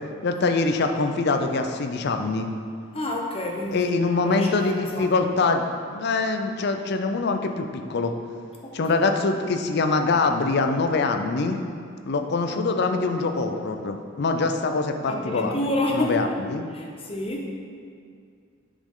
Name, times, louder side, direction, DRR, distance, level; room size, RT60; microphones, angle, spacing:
voice 1, 0.2-2.5 3.7-8.1 8.7-11.6 12.1-15.6 15.9-16.6, left 3 dB, 50° left, 6 dB, 0.5 m, -24 dB
voice 2, 2.9-3.9 4.2-5.1 8.6-9.0 12.5-13.0 15.1-16.4 16.7-17.5, left 1 dB, 25° left, 0 dB, 0.8 m, -29 dB
8.3 x 5.2 x 3.8 m, 2.3 s
head